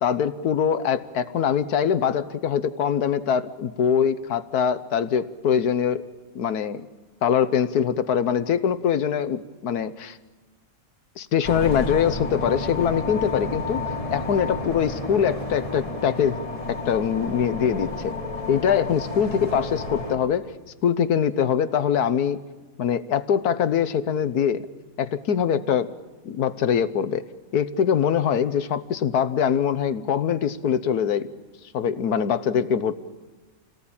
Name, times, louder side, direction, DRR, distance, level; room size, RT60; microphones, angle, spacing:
voice 1, 0.0-6.0 6.3-6.9 7.2-10.2 11.2-13.8 14.1-16.4 16.7-18.1 18.5-20.5 20.8-22.4 22.8-24.6 25.0-25.9 26.2-27.2 27.5-31.3 31.7-33.0, left 8 dB, 90° left, 13 dB, 1.5 m, -23 dB
sound 1, 11.4-20.1, left 3 dB, 20° left, 3.4 m, -31 dB
28.5 x 18.5 x 8.8 m, 1.3 s
omnidirectional pair, 1.6 m